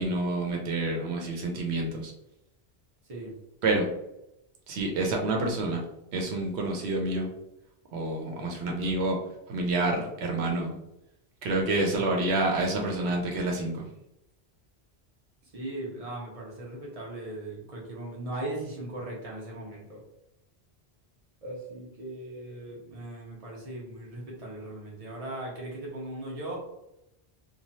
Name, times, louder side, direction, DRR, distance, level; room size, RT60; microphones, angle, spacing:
voice 1, 0.0-2.1 3.6-3.9 4.7-5.8 6.1-7.3 7.9-9.2 9.5-10.7 11.4-13.8, right 2 dB, 85° right, 1 dB, 0.9 m, -28 dB
voice 2, 15.5-20.0 21.4-26.6, right 1 dB, 35° right, -3 dB, 0.8 m, -38 dB
3.1 x 2.3 x 2.7 m, 0.85 s
omnidirectional pair, 1.1 m